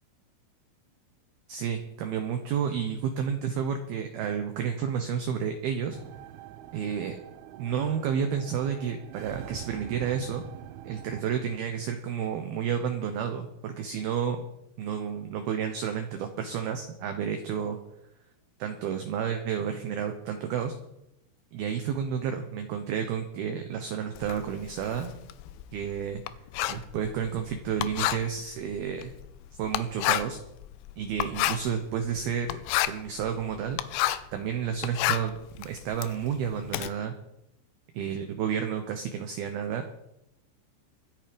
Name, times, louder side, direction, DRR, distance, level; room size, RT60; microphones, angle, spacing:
voice 1, 1.5-6.0 6.7-7.2 7.6-10.4 10.8-14.4 14.8-17.8 18.6-20.8 21.5-25.1 25.7-26.2 26.7-29.1 29.5-30.4 31.0-32.6 32.9-33.8 34.3-37.2 37.9-39.9, right 8 dB, 75° right, 6 dB, 2.3 m, -31 dB
sound 1, 5.9-11.2, right 12 dB, 90° right, 3.3 m, -44 dB
Writing, 24.2-34.4 34.7-36.9, left 14 dB, 85° left, 3.1 m, -31 dB
23.5 x 8.9 x 5.2 m, 0.83 s
omnidirectional pair, 5.7 m